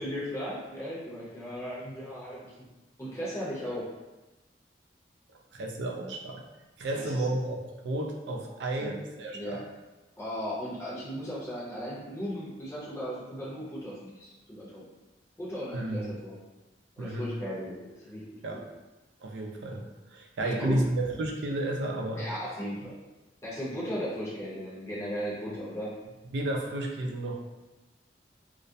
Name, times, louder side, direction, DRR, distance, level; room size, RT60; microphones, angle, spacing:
voice 1, 0.0-2.5 3.0-3.9 6.9-7.3 8.8-9.0 9.3-9.6 10.2-14.8 15.4-16.4 17.0-18.2 18.5-18.6 20.4-20.8 22.1-23.0 23.4-25.9, equal, 15° left, -9 dB, 0.7 m, -36 dB
voice 2, 5.5-6.4 6.8-9.6 15.7-16.2 17.0-17.3 18.4-18.6 19.2-22.3 26.3-27.4, right 1 dB, 85° right, 1 dB, 0.4 m, -32 dB
2.3 x 2.0 x 2.7 m, 1.1 s
head